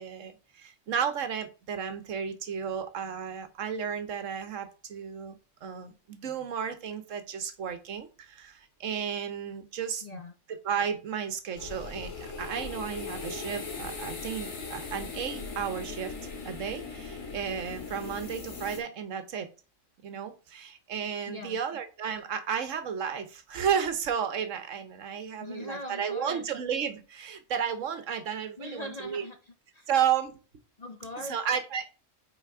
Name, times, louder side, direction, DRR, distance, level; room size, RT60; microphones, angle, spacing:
voice 1, 0.0-5.3 5.6-10.0 10.5-16.1 16.4-19.5 20.0-29.2 29.9-30.4 31.3-31.9, right 7 dB, 75° right, 10 dB, 1.2 m, -33 dB
voice 2, 10.0-10.3 21.3-21.6 25.4-26.5 28.6-29.9 30.8-31.4, left 1 dB, 40° left, 6 dB, 0.7 m, -41 dB
sound 1, 11.6-18.8, left 4 dB, 85° left, 2.1 m, -39 dB
5.8 x 4.0 x 4.7 m, 0.33 s
omnidirectional pair, 1.3 m